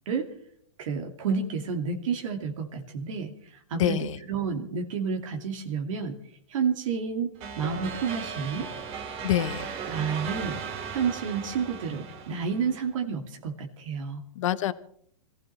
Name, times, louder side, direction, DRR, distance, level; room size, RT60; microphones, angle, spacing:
voice 1, 0.8-6.2 6.5-8.7 9.9-10.6 10.9-14.2, right 6 dB, 65° right, 3 dB, 2.5 m, -30 dB
voice 2, 3.8-4.2 9.2-9.7 14.3-14.7, left 12 dB, 65° left, 13 dB, 1.1 m, -26 dB
sound 1, 7.4-12.9, right 6 dB, 35° right, 2.5 m, -37 dB
26.5 x 15.5 x 3.3 m, 0.63 s
hypercardioid pair, 135°, 18 cm